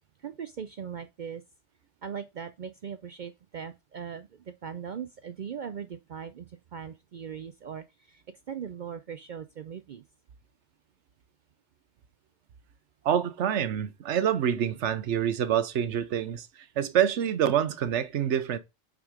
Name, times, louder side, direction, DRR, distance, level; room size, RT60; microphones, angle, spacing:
voice 1, 0.2-1.4 2.0-10.0, right 7 dB, 55° right, 0.6 m, -40 dB
voice 2, 13.0-18.6, right 9 dB, 85° right, 1.1 m, -26 dB
6.1 x 5.0 x 4.9 m
omnidirectional pair, 1.2 m